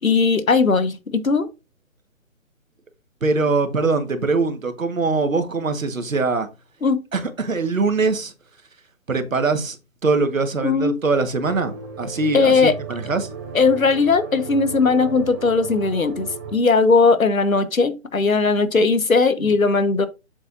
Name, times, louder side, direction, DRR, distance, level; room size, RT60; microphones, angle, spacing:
voice 1, 0.0-1.5 6.8-7.0 10.6-10.9 12.3-12.7 13.5-20.1, left 4 dB, 80° left, 1.3 m, -18 dB
voice 2, 3.2-6.5 7.1-8.3 9.1-9.8 10.0-13.3, right 3 dB, 75° right, 1.7 m, -22 dB
sound 1, 11.4-16.5, right 5 dB, 15° right, 1.1 m, -35 dB
7.8 x 7.3 x 2.6 m
figure-of-eight pair, 145°, 41 cm